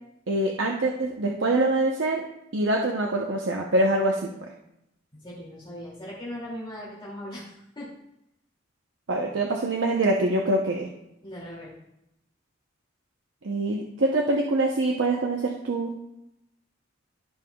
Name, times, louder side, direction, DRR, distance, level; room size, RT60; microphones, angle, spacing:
voice 1, 0.3-2.2 2.5-4.2 9.1-10.9 13.4-15.9, right 2 dB, 75° right, 0 dB, 0.8 m, -24 dB
voice 2, 5.1-7.9 11.2-11.7, left 1 dB, 25° left, -7 dB, 2.3 m, -39 dB
15.0 x 5.5 x 2.3 m, 0.82 s
head